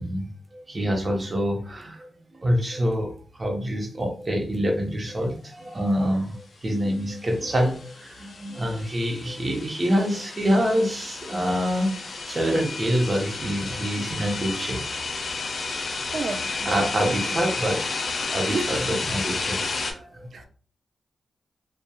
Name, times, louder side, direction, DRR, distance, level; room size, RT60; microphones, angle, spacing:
voice 1, 0.0-2.1 2.4-3.1 3.4-14.8 16.6-20.4, equal, 40° right, 0.8 m, -26 dB
sound 1, 7.3-19.9, left 4 dB, 70° left, 0.4 m, -32 dB
voice 2, 16.1-16.5 17.0-17.4 18.5-19.0 20.3-20.5, right 4 dB, 70° right, 0.4 m, -32 dB
2.8 x 2.3 x 2.3 m
cardioid pair, 50°, 0 cm